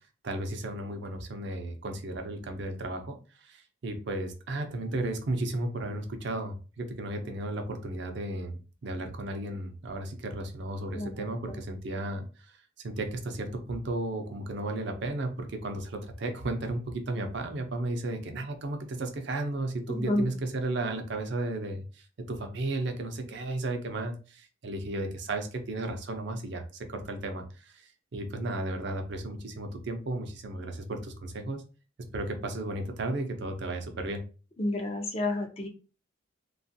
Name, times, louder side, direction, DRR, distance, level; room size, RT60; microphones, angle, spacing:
voice 1, 0.2-12.6 12.8-31.6 32.1-34.2, right 2 dB, 55° right, 5 dB, 0.5 m, -34 dB
voice 2, 10.9-11.6 19.9-20.3 34.6-35.7, left 1 dB, 30° left, 3 dB, 0.4 m, -31 dB
2.9 x 2.3 x 2.6 m, 0.35 s
head